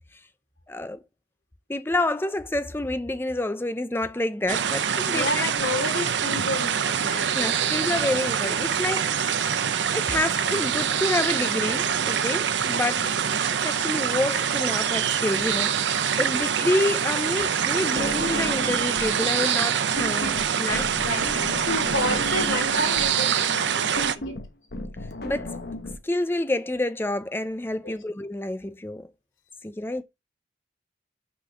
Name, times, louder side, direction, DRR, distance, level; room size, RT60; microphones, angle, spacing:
voice 1, 0.7-1.0 1.7-5.4 7.3-9.1 9.9-13.1 13.5-20.9 23.9-24.0 25.2-25.6 26.0-29.1 29.6-30.0, left 1 dB, 10° left, 0.4 m, -28 dB
sound 1, 4.5-24.2, right 8 dB, 70° right, 0.6 m, -25 dB
voice 2, 5.0-7.7 12.9-13.4 16.3-16.5 20.1-20.4 20.7-24.4 27.8-28.0, left 1 dB, 85° left, 2.7 m, -31 dB
sound 2, 18.0-19.2 19.5-26.0, left 1 dB, 55° left, 1.0 m, -34 dB
6.2 x 4.0 x 6.0 m
head